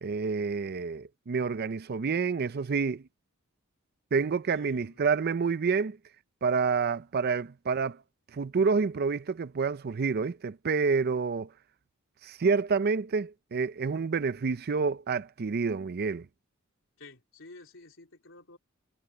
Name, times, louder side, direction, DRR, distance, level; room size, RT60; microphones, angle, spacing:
voice 1, 0.0-3.0 4.1-6.0 6.4-8.0 8.3-11.5 12.2-16.3, right 5 dB, 50° right, 0.5 m, -28 dB
voice 2, 4.5-5.0 17.0-18.6, left 3 dB, 65° left, 3.4 m, -51 dB
head